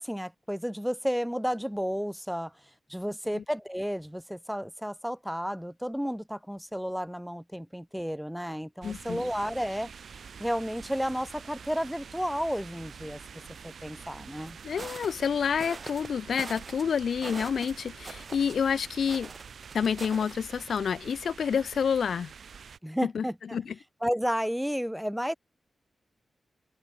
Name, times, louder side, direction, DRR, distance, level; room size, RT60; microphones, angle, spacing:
voice 1, 0.0-2.5 2.9-9.9 10.4-13.2 13.6-14.6 22.8-23.6 24.0-25.3, equal, ahead, 1.2 m, -32 dB
voice 2, 8.8-9.3 14.6-19.3 19.7-22.3 23.1-23.2 23.5-23.7, left 7 dB, 75° left, 0.3 m, -28 dB
sound 1, 8.8-22.8, right 6 dB, 70° right, 5.8 m, -47 dB
sound 2, 14.5-15.2 15.6-16.1 16.4-16.8 17.2-18.7 19.1-20.3, right 4 dB, 45° right, 1.6 m, -43 dB
open air
cardioid pair, 80°, 0 cm